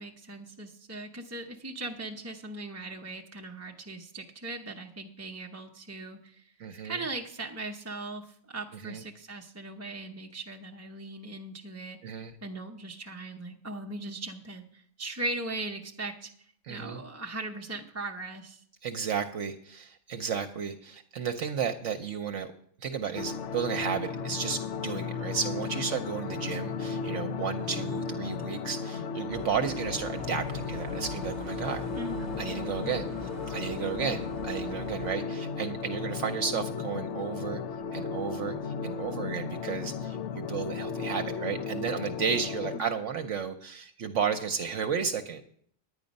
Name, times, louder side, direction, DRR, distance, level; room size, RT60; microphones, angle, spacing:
voice 1, 0.0-6.5 6.8-12.1 12.4-16.3 16.7-18.6 31.9-32.5 42.7-42.9, right 2 dB, 15° right, 1 dB, 0.6 m, -39 dB
voice 2, 6.6-7.0 8.8-9.0 12.0-12.3 16.7-17.0 18.8-22.5 22.8-31.9 32.4-37.6 37.9-45.4, right 7 dB, 70° right, 6 dB, 1.0 m, -33 dB
sound 1, 23.1-42.8, left 5 dB, 65° left, 0.9 m, -35 dB
sound 2, 29.3-35.2, right 4 dB, 35° right, 1.0 m, -44 dB
9.8 x 9.7 x 5.2 m, 0.62 s
omnidirectional pair, 1.4 m